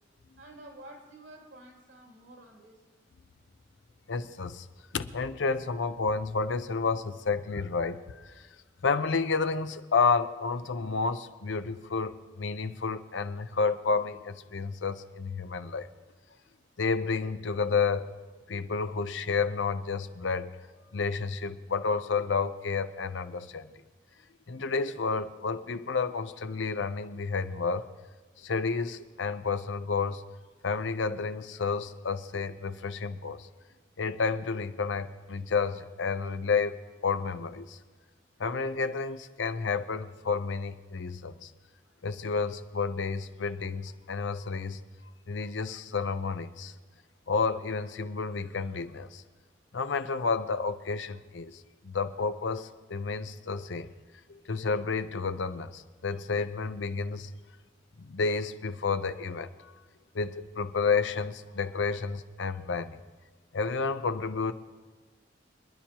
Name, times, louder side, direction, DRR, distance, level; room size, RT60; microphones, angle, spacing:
voice 1, 0.4-2.8, right 1 dB, 85° right, 1 dB, 2.7 m, -50 dB
voice 2, 4.1-4.7 4.9-8.5 8.8-15.9 16.8-18.1 18.5-20.6 20.9-23.7 24.5-27.9 28.4-30.2 30.6-33.5 34.0-37.8 38.4-41.5 42.0-44.8 45.3-46.7 47.3-49.2 49.7-53.9 54.3-57.3 58.0-59.7 60.1-63.0 63.5-64.5, left 4 dB, 85° left, 11 dB, 0.7 m, -30 dB
26.5 x 10.5 x 3.0 m, 1.3 s
head